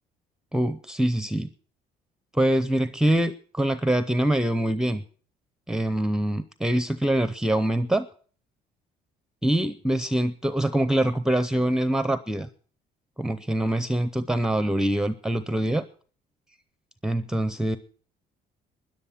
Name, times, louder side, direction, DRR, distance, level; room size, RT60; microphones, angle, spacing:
voice 1, 0.5-1.5 2.3-5.0 5.7-8.1 9.4-12.5 13.2-15.8 17.0-17.8, right 1 dB, 5° right, 13 dB, 0.6 m, -24 dB
13.0 x 10.5 x 7.0 m, 0.43 s
cardioid pair, 110°, 17 cm